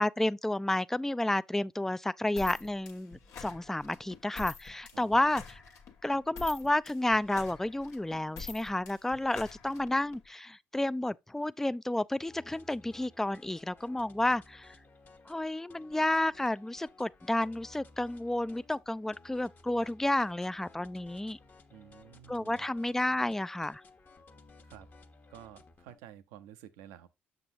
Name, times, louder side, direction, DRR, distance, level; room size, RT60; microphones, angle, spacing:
voice 1, 0.0-5.6 6.0-14.7 15.3-21.4 22.3-23.8, left 1 dB, 5° left, 0.3 m, -31 dB
sound 1, 2.4-10.2, left 5 dB, 70° left, 1.1 m, -47 dB
voice 2, 4.9-5.4 21.7-22.7 24.6-24.9 25.3-27.1, right 11 dB, 85° right, 0.6 m, -52 dB
sound 2, 12.3-26.0, left 3 dB, 35° left, 1.0 m, -57 dB
6.9 x 5.9 x 2.7 m
hypercardioid pair, 55°, 5 cm